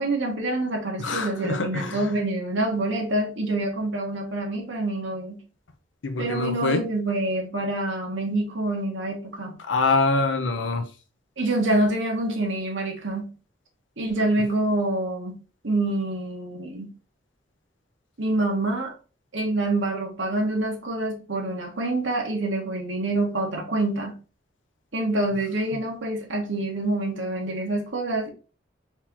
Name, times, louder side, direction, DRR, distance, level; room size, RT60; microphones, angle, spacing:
voice 1, 0.0-5.4 6.2-9.6 11.4-13.3 14.0-15.4 15.6-16.9 18.2-18.9 19.3-24.2 24.9-28.3, right 2 dB, 85° right, 1.4 m, -26 dB
voice 2, 1.0-2.0 6.0-6.8 9.7-10.9, left 3 dB, 85° left, 0.8 m, -24 dB
4.4 x 2.9 x 3.6 m
head